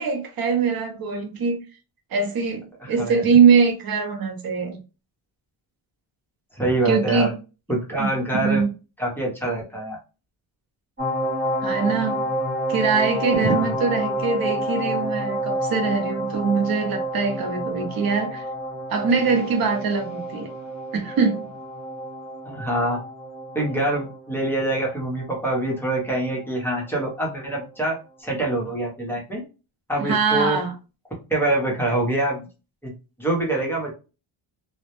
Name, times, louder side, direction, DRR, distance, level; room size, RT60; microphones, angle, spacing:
voice 1, 0.0-1.6 2.1-4.8 6.8-7.3 8.0-8.1 8.4-8.7 11.6-12.3 12.7-18.4 18.9-20.5 20.9-21.5 30.0-30.7, right 5 dB, 45° right, 0.6 m, -22 dB
voice 2, 2.8-3.2 6.5-7.3 7.7-8.6 9.0-10.0 13.4-13.7 22.5-23.0 23.5-29.4 29.9-30.6 31.3-32.5 32.8-32.9 33.2-33.9, right 1 dB, 5° left, 0.6 m, -25 dB
sound 1, 11.0-26.5 26.9-27.0, right 1 dB, 20° right, 1.0 m, -29 dB
2.1 x 2.1 x 2.9 m
wide cardioid pair, 150°, 49 cm